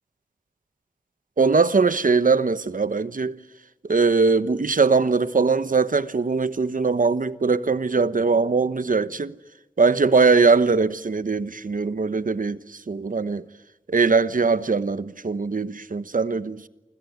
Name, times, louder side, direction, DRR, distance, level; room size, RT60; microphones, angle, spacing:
voice 1, 1.4-3.4 3.8-9.4 9.8-13.4 13.9-16.7, right 4 dB, 75° right, 1.1 m, -21 dB
29.0 x 25.5 x 8.1 m
wide cardioid pair, 55°, 14 cm